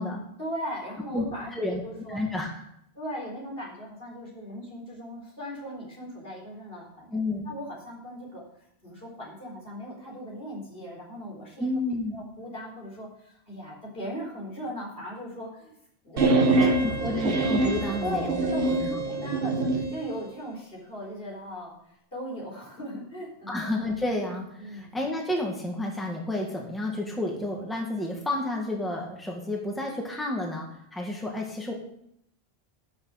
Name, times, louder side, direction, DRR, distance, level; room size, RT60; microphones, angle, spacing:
voice 1, 0.4-2.2 3.0-7.1 7.4-8.4 8.8-11.7 12.1-15.7 16.0-17.1 18.0-21.7 22.1-23.6 24.6-24.9, equal, 60° left, -3 dB, 4.3 m, -38 dB
voice 2, 1.5-1.8 2.1-2.5 7.1-7.5 11.6-12.2 16.8-18.4 18.7-18.9 23.5-31.7, left 1 dB, ahead, 0 dB, 1.9 m, -30 dB
sound 1, 16.2-19.9, right 2 dB, 60° right, 1.5 m, -24 dB
12.0 x 6.5 x 6.5 m, 0.73 s
omnidirectional pair, 1.1 m